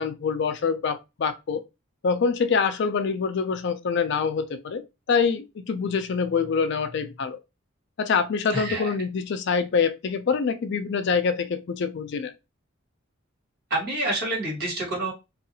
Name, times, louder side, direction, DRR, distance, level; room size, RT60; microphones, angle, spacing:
voice 1, 0.0-1.6 2.0-7.4 8.0-12.3, left 5 dB, 60° left, 0.4 m, -25 dB
voice 2, 8.5-8.9 13.7-15.1, right 2 dB, 50° right, 1.7 m, -27 dB
2.7 x 2.4 x 2.7 m
head